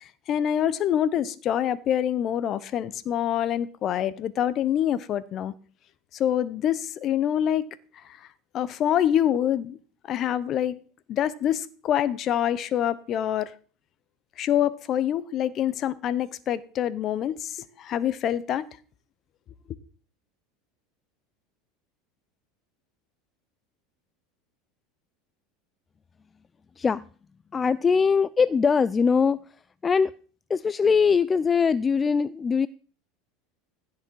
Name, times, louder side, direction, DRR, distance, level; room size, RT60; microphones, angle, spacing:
voice 1, 0.0-5.5 6.1-7.7 8.0-8.2 8.5-9.8 10.1-10.8 11.1-13.5 14.4-18.7, left 10 dB, 45° left, 1.0 m, -26 dB
voice 2, 27.5-29.4 29.8-30.1 30.5-32.7, left 5 dB, 25° left, 0.4 m, -22 dB
16.0 x 6.5 x 4.7 m
supercardioid pair, 100°, 0 cm